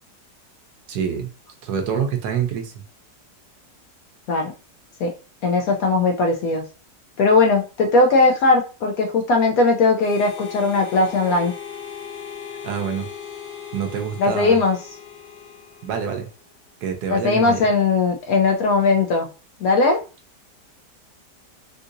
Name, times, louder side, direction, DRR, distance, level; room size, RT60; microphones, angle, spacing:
voice 1, 0.9-1.3 1.6-2.8 12.6-13.1 13.7-14.6 15.8-16.3 16.8-17.7, right 7 dB, 70° right, 5 dB, 1.2 m, -26 dB
voice 2, 5.4-6.6 7.2-11.5 14.2-14.8 17.1-19.3 19.6-20.0, left 3 dB, 70° left, 2 dB, 0.9 m, -18 dB
Harmonica, 10.0-16.4, left 8 dB, 85° left, 1.6 m, -38 dB
3.7 x 2.7 x 2.5 m, 0.33 s
omnidirectional pair, 1.9 m